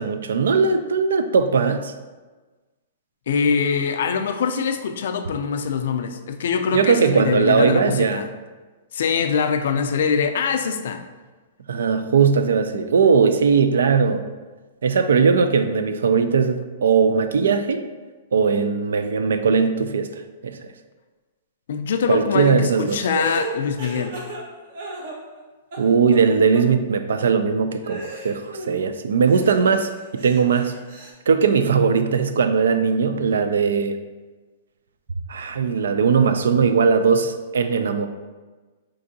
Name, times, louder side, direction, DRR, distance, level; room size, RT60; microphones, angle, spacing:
voice 1, 0.0-1.9 6.7-8.2 11.7-14.2 14.8-17.8 18.3-20.1 20.4-20.6 22.1-23.0 25.8-30.8 31.3-34.0 35.3-38.1, right 5 dB, 90° right, 9 dB, 0.3 m, -19 dB
voice 2, 3.3-8.3 8.9-11.0 21.7-24.1, left 6 dB, 70° left, 8 dB, 0.3 m, -23 dB
sound 1, 22.9-25.4 25.7-26.3 26.5-26.6 27.2-27.3 27.8-28.8 29.2-31.1, right 2 dB, 55° right, 0.8 m, -34 dB
4.6 x 2.5 x 2.7 m, 1.3 s
hypercardioid pair, 155°, 0 cm